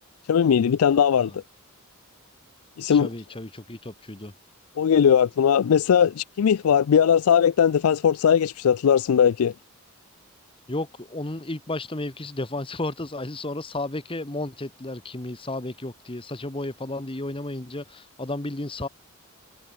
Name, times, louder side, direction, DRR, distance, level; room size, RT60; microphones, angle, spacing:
voice 1, 0.3-1.4 2.8-3.1 4.8-9.5, left 8 dB, 90° left, 0.4 m, -19 dB
voice 2, 2.9-4.3 10.7-18.9, left 2 dB, 25° left, 1.3 m, -33 dB
head